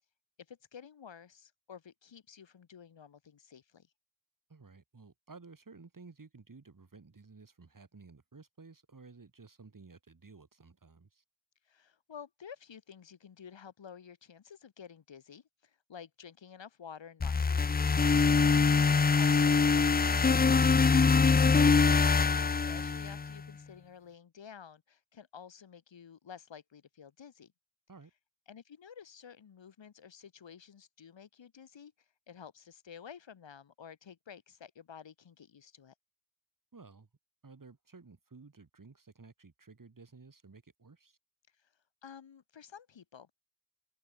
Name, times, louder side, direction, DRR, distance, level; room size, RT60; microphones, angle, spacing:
voice 1, 0.5-3.9 11.6-18.2 19.2-20.5 21.0-27.5 28.5-31.9 32.3-35.9 41.6-41.7 42.0-43.3, left 7 dB, 75° left, 2.3 m, -51 dB
voice 2, 4.5-11.2 18.4-18.7 27.9-28.1 36.7-37.1 37.4-41.2, right 4 dB, 45° right, 4.6 m, -54 dB
sound 1, 17.2-23.4, left 5 dB, 20° left, 0.5 m, -24 dB
open air
cardioid pair, 50°, 45 cm